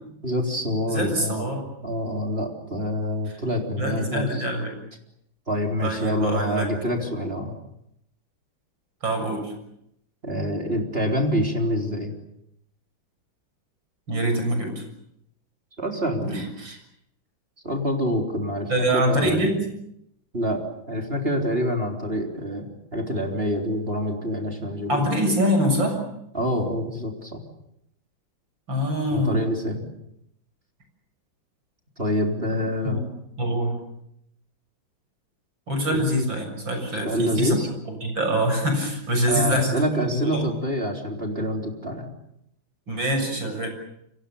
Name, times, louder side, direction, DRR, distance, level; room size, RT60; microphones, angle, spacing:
voice 1, 0.2-1.5 1.8-4.4 5.5-7.5 10.2-12.1 15.8-16.5 17.6-19.5 20.3-20.6 20.9-25.1 26.3-27.4 29.1-29.8 32.0-33.0 35.9-36.0 36.9-37.7 39.3-42.1, equal, 30° right, 2 dB, 4.0 m, -26 dB
voice 2, 0.9-1.7 3.3-3.4 3.8-4.7 5.8-6.7 9.0-9.5 14.1-14.8 16.2-16.8 18.7-19.6 24.9-26.0 28.7-29.4 32.8-33.0 33.4-33.8 35.7-37.6 38.0-40.4 42.9-43.7, equal, 70° right, 5 dB, 7.8 m, -24 dB
29.0 x 25.0 x 7.1 m, 0.78 s
omnidirectional pair, 2.2 m